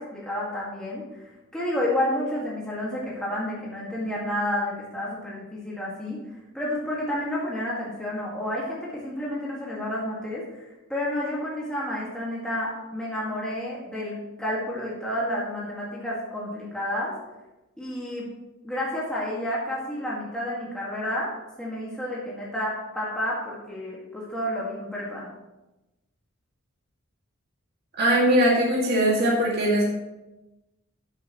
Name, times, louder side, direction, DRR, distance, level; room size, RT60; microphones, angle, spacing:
voice 1, 0.0-6.2 6.5-17.1 17.8-18.3 18.6-21.3 21.6-25.3, left 1 dB, 5° left, -6 dB, 2.2 m, -30 dB
voice 2, 28.0-29.8, right 1 dB, 50° right, -5 dB, 2.5 m, -20 dB
14.0 x 8.3 x 3.3 m, 1.0 s
head